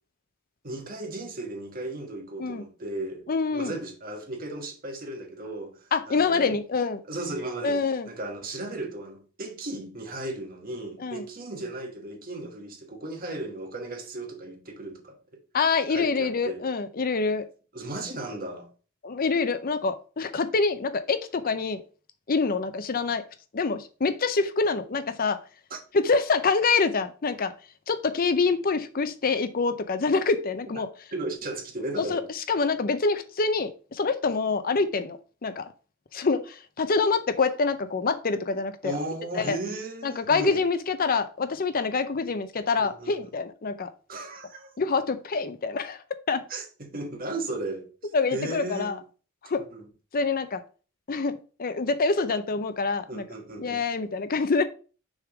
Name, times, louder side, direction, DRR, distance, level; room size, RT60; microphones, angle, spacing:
voice 1, 0.6-6.5 7.1-15.2 15.9-16.7 17.7-18.7 25.7-25.8 31.1-32.2 38.8-40.6 42.8-43.2 44.1-44.7 46.5-47.9 48.3-49.0 49.7-49.8 53.1-53.8, right 2 dB, 45° right, 1.4 m, -35 dB
voice 2, 3.3-3.7 5.9-7.0 7.6-8.1 11.0-11.3 15.5-17.5 19.0-21.8 22.3-23.2 23.5-25.4 25.9-27.5 27.9-30.9 32.0-35.7 36.1-39.0 39.3-39.6 40.0-43.9 44.8-46.4 48.1-49.0 49.5-49.6 50.1-50.6 51.1-53.2 53.6-54.6, left 4 dB, 45° left, 0.6 m, -26 dB
6.3 x 3.7 x 4.8 m
head